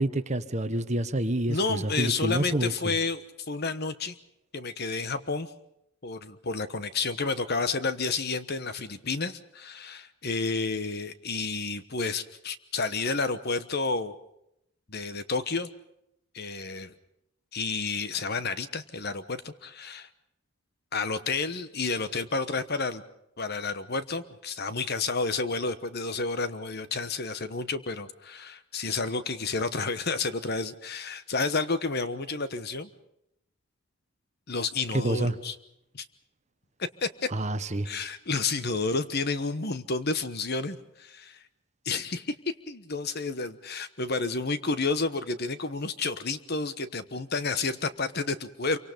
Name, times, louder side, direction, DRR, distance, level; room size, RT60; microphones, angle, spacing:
voice 1, 0.0-2.9 34.9-35.3 37.3-37.9, right 1 dB, 30° right, 10 dB, 1.2 m, -28 dB
voice 2, 1.5-4.1 4.5-5.5 6.0-14.1 14.9-15.7 16.3-16.9 17.5-20.1 20.9-23.0 23.4-32.9 34.5-35.5 35.9-36.0 36.8-37.1 37.8-41.4 41.8-42.3 42.7-48.8, left 4 dB, 45° left, 12 dB, 1.1 m, -30 dB
27.0 x 24.5 x 5.2 m, 0.79 s
head